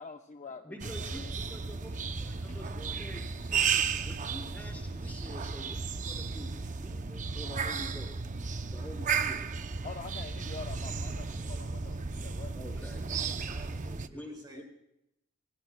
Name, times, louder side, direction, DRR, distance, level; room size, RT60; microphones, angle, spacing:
voice 1, 0.0-0.8 1.1-1.4 2.4-2.6 5.7-6.5 7.1-7.3 8.5-8.7 9.8-12.6, left 4 dB, 35° left, 4 dB, 0.7 m, -46 dB
voice 2, 0.6-8.2 8.7-9.5 12.5-13.2 13.8-14.6, left 1 dB, 10° left, -1 dB, 5.8 m, -47 dB
sound 1, 0.8-14.1, right 5 dB, 35° right, 0.6 m, -34 dB
voice 3, 12.7-14.6, right 1 dB, 20° right, 1 dB, 2.8 m, -52 dB
29.5 x 16.5 x 2.3 m, 0.82 s
head